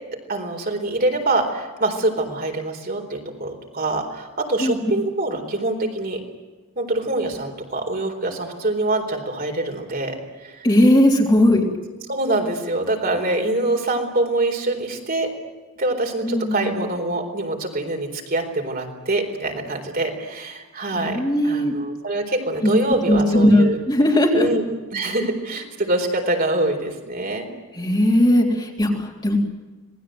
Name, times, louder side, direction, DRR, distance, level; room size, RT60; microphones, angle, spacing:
voice 1, 0.3-6.2 6.8-10.7 11.4-11.5 12.1-15.3 15.8-23.8 24.3-27.5, right 2 dB, 45° right, 3 dB, 4.2 m, -25 dB
voice 2, 10.6-11.7 16.2-16.7 20.9-21.7 23.1-24.5 27.7-29.4, left 1 dB, 20° left, 0 dB, 3.5 m, -18 dB
27.0 x 20.0 x 7.9 m, 1.2 s
head